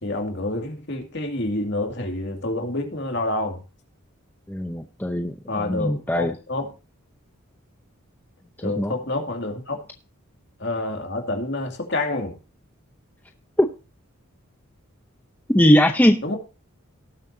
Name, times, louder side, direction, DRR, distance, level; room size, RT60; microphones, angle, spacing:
voice 1, 0.0-3.6 5.5-6.7 8.6-9.8 10.6-12.3 16.2-16.4, left 2 dB, 55° left, 3 dB, 2.4 m, -28 dB
voice 2, 4.5-6.3 8.6-8.9 13.6-13.7 15.5-16.2, equal, 10° left, 4 dB, 0.6 m, -20 dB
18.5 x 7.6 x 2.7 m, 0.31 s
head